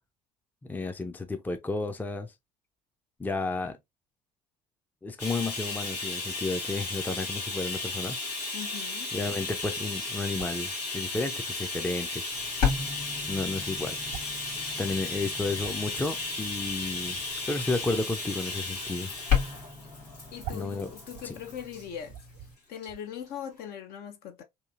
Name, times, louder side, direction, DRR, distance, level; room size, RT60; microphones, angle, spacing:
voice 1, 0.6-2.3 3.2-3.8 5.0-8.2 9.1-12.2 13.3-14.0 14.5-17.2 17.5-19.1 20.5-20.9 21.2-21.3, left 3 dB, 10° left, 0.5 m, -32 dB
Bathtub (filling or washing), 5.2-21.8 22.8-22.9 23.3-23.4, left 3 dB, 90° left, 1.2 m, -35 dB
voice 2, 8.5-9.1 20.3-22.1 22.7-24.4, left 9 dB, 50° left, 0.7 m, -40 dB
sound 1, 10.3-10.7 11.9-12.0 12.2-12.3 12.5-12.9 14.0-14.4 14.9-15.0 15.3-16.0 17.2-17.4 18.1-18.4 18.8-19.0 19.4-19.5 19.7-19.8 20.4-21.4 21.7-21.8 22.0-22.5 22.8-23.0, right 11 dB, 55° right, 0.4 m, -44 dB
sound 2, 12.3-22.5, left 7 dB, 70° left, 1.5 m, -35 dB
2.8 x 2.7 x 2.4 m
figure-of-eight pair, 60°, 20 cm